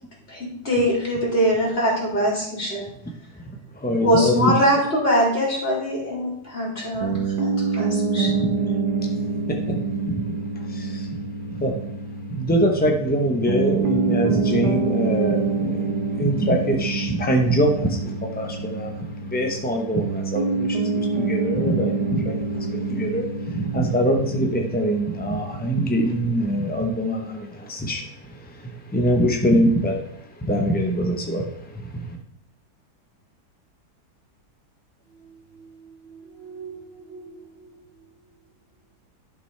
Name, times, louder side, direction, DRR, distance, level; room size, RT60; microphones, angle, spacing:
voice 1, 0.3-2.9 4.0-8.3, equal, 35° left, 3.0 m, -22 dB
voice 2, 3.8-4.6 9.0-9.1 9.5-10.2 10.5-11.1 11.6-11.7 12.3-32.2, equal, 10° left, 0.4 m, -24 dB
Piano, 7.0-26.4, right 4 dB, 90° right, 1.4 m, -26 dB
voice 3, 35.1-37.8, right 5 dB, 45° right, 0.9 m, -44 dB
11.0 x 5.9 x 3.3 m
omnidirectional pair, 1.7 m